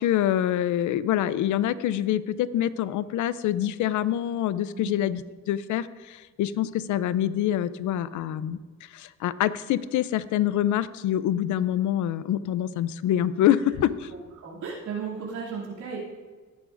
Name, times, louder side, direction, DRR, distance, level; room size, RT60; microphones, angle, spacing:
voice 1, 0.0-14.1, left 11 dB, 75° left, 15 dB, 0.6 m, -26 dB
voice 2, 14.1-16.0, right 6 dB, 75° right, -5 dB, 2.8 m, -35 dB
17.5 x 8.4 x 2.6 m, 1.4 s
cardioid pair, 90°, 30 cm